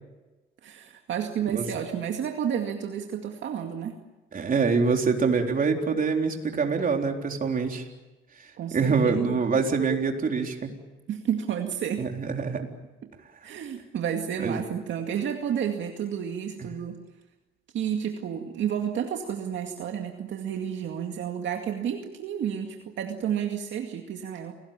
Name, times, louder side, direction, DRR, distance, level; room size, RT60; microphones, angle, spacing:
voice 1, 0.6-4.0 8.6-9.4 11.1-12.0 13.0-13.1 13.4-17.0 17.7-24.5, right 8 dB, 70° right, 3 dB, 2.2 m, -31 dB
voice 2, 4.3-7.8 8.7-10.7 12.0-12.6 14.4-14.6 16.6-16.7, right 5 dB, 45° right, 3 dB, 4.0 m, -25 dB
29.0 x 19.0 x 8.9 m, 1.1 s
cardioid pair, 90°, 20 cm